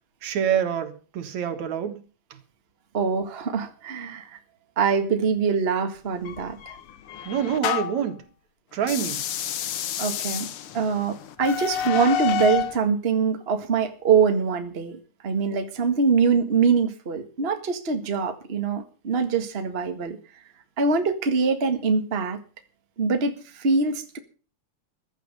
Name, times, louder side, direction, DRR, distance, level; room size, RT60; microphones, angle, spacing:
voice 1, 0.2-2.0 2.3-2.4 7.2-8.2 8.7-9.2, right 8 dB, 70° right, 7 dB, 3.0 m, -26 dB
voice 2, 2.9-4.4 4.8-6.8 10.0-10.5 10.7-20.2 20.8-22.4 23.0-24.2, right 5 dB, 25° right, 6 dB, 1.5 m, -24 dB
sound 1, 6.3-8.1 8.8-12.8, left 9 dB, 60° left, 1.6 m, -29 dB
15.0 x 12.5 x 5.5 m, 0.36 s
omnidirectional pair, 3.4 m